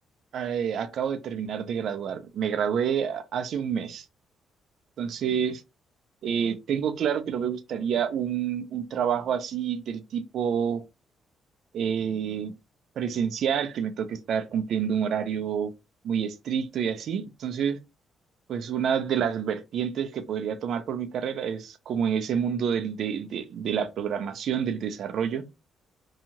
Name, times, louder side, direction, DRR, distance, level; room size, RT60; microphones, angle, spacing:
voice 1, 0.3-4.1 5.0-5.6 6.2-10.8 11.7-12.5 13.0-15.7 16.0-17.8 18.5-25.4, right 8 dB, 70° right, 0.5 m, -28 dB
2.8 x 2.4 x 2.8 m
cardioid pair, 90°, 0 cm